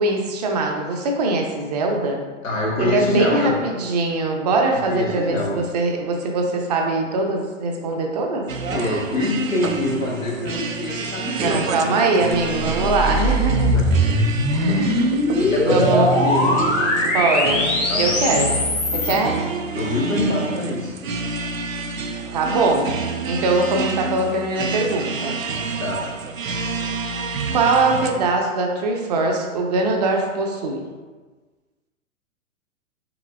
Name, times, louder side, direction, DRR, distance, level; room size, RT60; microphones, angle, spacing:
voice 1, 0.0-2.2 2.8-8.5 11.4-13.8 14.5-15.2 15.6-16.1 17.0-17.7 18.0-18.7 18.9-19.4 22.3-22.9 23.2-25.4 27.5-30.8, right 3 dB, 35° right, 2 dB, 0.5 m, -22 dB
voice 2, 2.4-3.5 4.9-5.6 8.7-11.6 13.7-14.2 14.6-14.9 15.4-16.6 17.9-18.2 18.9-19.2 19.7-21.0 25.8-26.0, left 2 dB, 85° left, -3 dB, 1.3 m, -25 dB
sound 1, 8.5-28.1, right 3 dB, 85° right, 0.5 m, -28 dB
sound 2, 12.4-19.2, left 1 dB, 15° left, 0.7 m, -21 dB
4.9 x 3.8 x 2.3 m, 1.3 s
figure-of-eight pair, 110°, 39 cm